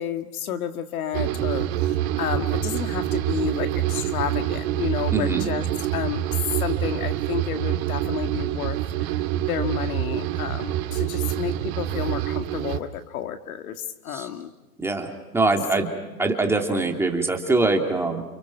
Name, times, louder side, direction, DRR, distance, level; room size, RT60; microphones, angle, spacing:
voice 1, 0.0-5.6 5.9-6.3 6.6-8.8 9.4-14.5 15.8-15.9, left 9 dB, 65° left, 8 dB, 2.1 m, -31 dB
sound 1, 1.1-12.8, right 13 dB, 40° right, 2.4 m, -26 dB
voice 2, 5.1-5.4 14.1-14.3 14.8-15.9 16.2-18.2, right 3 dB, 5° right, 3 dB, 2.9 m, -23 dB
29.5 x 29.5 x 6.0 m, 1.1 s
hypercardioid pair, 140°, 45 cm